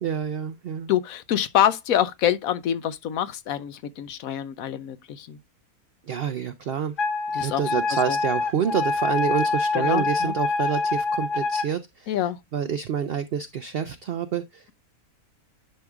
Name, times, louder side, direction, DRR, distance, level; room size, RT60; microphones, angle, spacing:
voice 1, 0.0-0.9 6.1-6.9 7.4-12.1 12.5-14.6, right 8 dB, 65° right, 0.6 m, -28 dB
voice 2, 0.9-5.4 7.3-7.6 7.9-8.2 9.7-10.3 12.1-12.4, left 10 dB, 70° left, 1.0 m, -26 dB
Wind instrument woodwind instrument, 7.0-11.7, left 3 dB, 55° left, 1.5 m, -25 dB
10.5 x 4.7 x 2.3 m
omnidirectional pair, 1.6 m